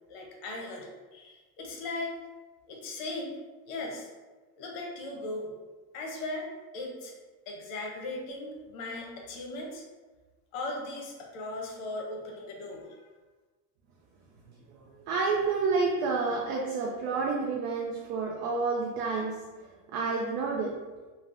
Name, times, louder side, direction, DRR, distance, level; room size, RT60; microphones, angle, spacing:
voice 1, 0.1-2.2 2.7-3.4 3.6-4.1 4.6-5.5 5.9-7.2 7.5-9.8 10.5-13.1, left 2 dB, 85° left, 0 dB, 0.8 m, -38 dB
voice 2, 14.7-19.4 19.9-20.8, right 4 dB, 50° right, -1 dB, 0.4 m, -29 dB
3.4 x 2.0 x 2.4 m, 1.3 s
cardioid pair, 140°, 40 cm